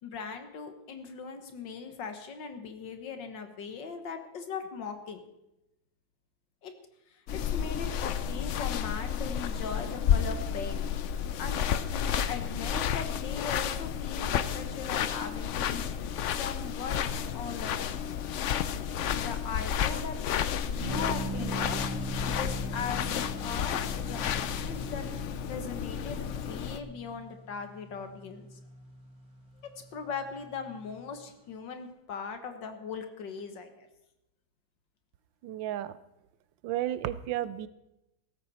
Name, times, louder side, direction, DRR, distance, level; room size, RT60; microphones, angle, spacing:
voice 1, 0.0-5.2 6.6-6.7 7.3-10.8 11.4-11.6 11.9-18.0 19.1-20.2 20.7-21.8 22.3-25.0 25.5-28.6 29.6-33.9, left 5 dB, 70° left, 7 dB, 2.1 m, -39 dB
sound 1, 7.3-26.8, left 8 dB, 85° left, 0.6 m, -31 dB
sound 2, 20.8-31.3, right 2 dB, 50° right, 2.7 m, -41 dB
voice 2, 35.4-35.9 36.6-37.7, right 12 dB, 85° right, 15 dB, 1.4 m, -32 dB
16.0 x 14.0 x 4.2 m, 0.91 s
omnidirectional pair, 2.0 m